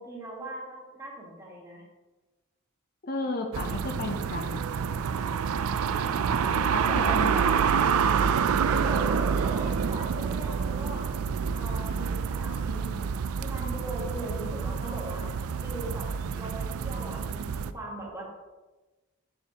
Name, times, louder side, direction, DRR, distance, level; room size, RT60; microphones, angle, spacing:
voice 1, 0.0-1.8 6.0-7.5 8.6-11.0 11.5-15.2 15.6-16.1 16.3-18.2, right 1 dB, 15° right, -3 dB, 1.6 m, -39 dB
voice 2, 3.0-4.6 6.5-7.7, left 2 dB, 45° left, 3 dB, 0.6 m, -33 dB
sound 1, 3.5-17.7, right 6 dB, 80° right, 0.4 m, -27 dB
7.2 x 6.9 x 2.9 m, 1.2 s
head